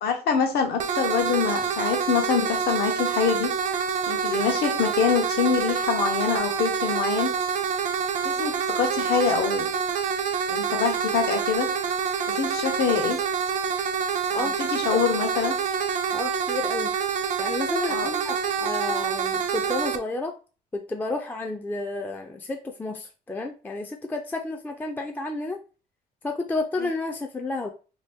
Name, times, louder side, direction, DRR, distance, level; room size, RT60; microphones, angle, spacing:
voice 1, 0.0-3.5 4.1-7.3 8.2-9.7 10.5-11.7 12.3-13.2 14.3-15.5 17.9-18.1 26.8-26.9, left 6 dB, 70° left, 5 dB, 0.9 m, -25 dB
sound 1, 0.8-20.0, right 7 dB, 45° right, 0.5 m, -27 dB
voice 2, 16.1-16.9 17.4-20.3 20.7-25.6 26.2-27.7, left 2 dB, 10° left, 4 dB, 0.3 m, -31 dB
2.8 x 2.5 x 3.5 m, 0.34 s
cardioid pair, 110°, 17 cm